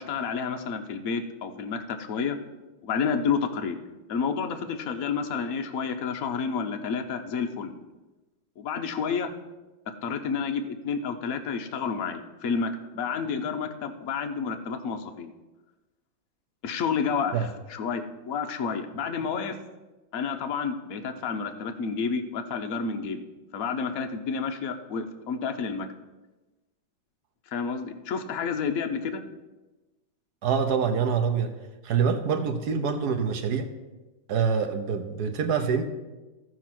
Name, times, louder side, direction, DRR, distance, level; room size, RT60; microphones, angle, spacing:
voice 1, 0.0-2.4 2.8-3.8 4.1-7.7 8.6-9.3 10.0-15.3 16.6-19.6 20.1-23.2 23.5-25.9 27.5-29.2, left 5 dB, 55° left, 6 dB, 1.1 m, -30 dB
voice 2, 30.4-31.5 31.8-33.7 34.3-35.8, right 6 dB, 65° right, 7 dB, 1.2 m, -25 dB
14.0 x 4.8 x 5.9 m, 1.1 s
omnidirectional pair, 2.1 m